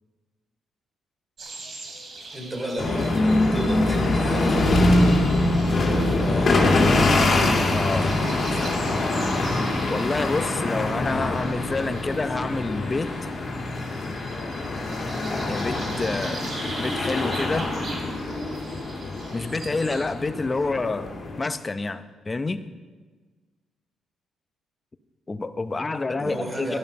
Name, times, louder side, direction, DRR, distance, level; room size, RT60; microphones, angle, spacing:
sound 1, 1.4-20.0, right 3 dB, 50° right, 2.9 m, -41 dB
voice 1, 2.3-5.0 5.7-7.0 7.9-8.7 26.2-26.8, right 1 dB, 20° right, 1 dB, 3.8 m, -33 dB
sound 2, 2.8-21.4, left 2 dB, 45° left, 2.5 m, -24 dB
voice 2, 7.7-8.1 9.9-13.1 15.5-16.4 16.8-17.7 19.3-22.6 25.3-26.8, left 3 dB, 25° left, 11 dB, 0.7 m, -28 dB
12.0 x 11.5 x 5.2 m, 1.4 s
cardioid pair, 90°, 0 cm